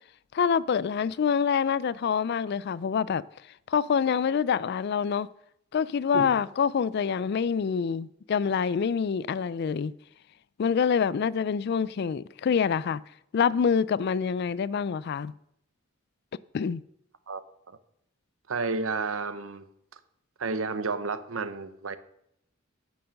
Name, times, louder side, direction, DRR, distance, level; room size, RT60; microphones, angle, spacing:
voice 1, 0.3-3.2 3.7-5.3 5.7-9.9 10.6-13.0 13.3-15.3 16.5-16.8, left 6 dB, 50° left, 0.3 m, -26 dB
voice 2, 18.5-19.7 20.4-22.0, right 4 dB, 75° right, 0.8 m, -31 dB
9.3 x 6.9 x 6.4 m
head